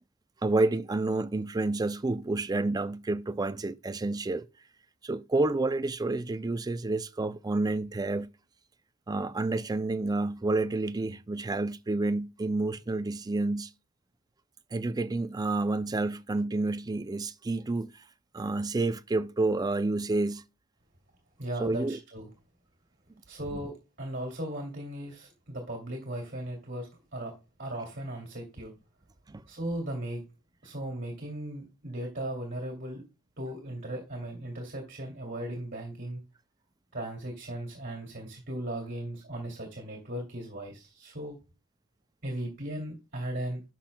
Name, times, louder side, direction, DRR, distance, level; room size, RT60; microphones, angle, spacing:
voice 1, 0.4-4.5 5.0-8.3 9.1-13.7 14.7-17.9 18.3-20.4 21.6-22.0 29.3-29.4, right 2 dB, 15° right, 0.4 m, -29 dB
voice 2, 21.4-22.3 23.3-27.3 27.6-28.7 29.5-30.2 30.6-33.0 33.4-36.2 36.9-41.4 42.2-43.6, right 1 dB, 45° right, 2.4 m, -37 dB
11.5 x 6.1 x 2.2 m
head